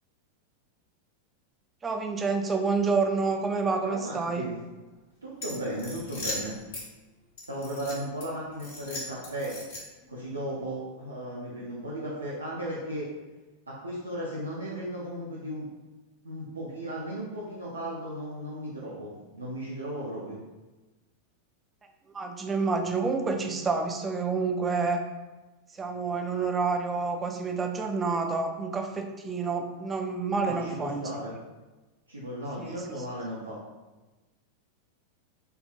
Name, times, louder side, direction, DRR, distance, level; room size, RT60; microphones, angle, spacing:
voice 1, 1.8-4.5 22.1-25.0 25.7-31.2 32.6-32.8, right 4 dB, 15° right, 4 dB, 0.4 m, -28 dB
voice 2, 3.8-4.5 5.2-6.5 7.4-9.6 10.1-13.1 13.7-15.7 16.2-20.4 30.4-31.3 32.1-33.6, right 1 dB, 80° right, -6 dB, 0.5 m, -36 dB
sound 1, 5.4-6.9 7.4-8.3 8.6-10.1, left 2 dB, 55° left, 1.1 m, -38 dB
4.4 x 2.1 x 2.5 m, 1.2 s
figure-of-eight pair, 90°, 0 cm